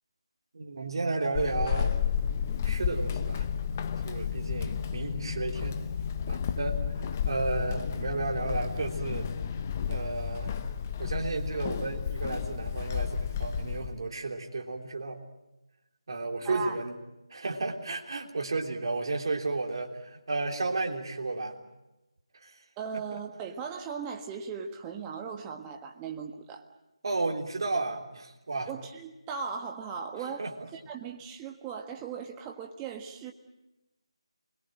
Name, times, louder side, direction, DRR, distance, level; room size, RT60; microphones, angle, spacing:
voice 1, 0.5-2.0 2.6-3.6 4.0-5.8 6.3-7.0 7.2-9.3 9.9-10.6 11.0-15.2 16.1-17.0 17.3-21.6 22.4-22.6 23.1-23.2 27.0-28.7 30.4-30.5, right 3 dB, 50° right, 2 dB, 3.3 m, -33 dB
Walk footsteps / Squeak, 1.3-14.0, left 7 dB, 25° left, 0.9 m, -32 dB
voice 2, 16.4-16.8 22.8-26.6 28.7-33.3, right 6 dB, 10° right, 3 dB, 1.5 m, -38 dB
28.0 x 21.5 x 7.7 m, 0.97 s
figure-of-eight pair, 160°, 3 cm